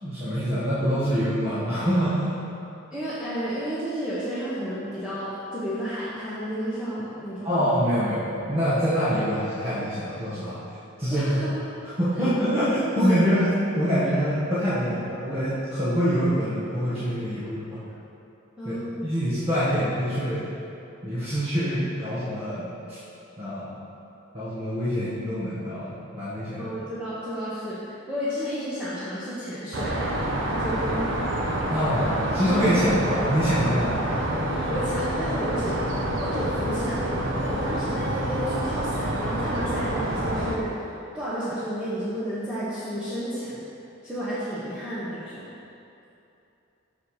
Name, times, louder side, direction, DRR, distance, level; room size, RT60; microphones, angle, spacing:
voice 1, 0.0-2.3 7.4-10.6 11.0-11.3 12.0-17.8 18.6-18.7 19.0-20.4 21.0-23.0 23.4-23.7 24.3-26.7 31.7-34.0, equal, 30° right, -12 dB, 1.5 m, -25 dB
voice 2, 2.9-7.5 11.1-11.8 18.6-19.1 26.6-31.2 32.7-32.9 34.7-35.9 36.2-43.6 44.0-45.5, equal, 5° right, -12 dB, 1.2 m, -32 dB
sound 1, 29.7-40.6, right 1 dB, 65° right, 0.9 m, -27 dB
6.8 x 6.6 x 4.9 m, 2.8 s
head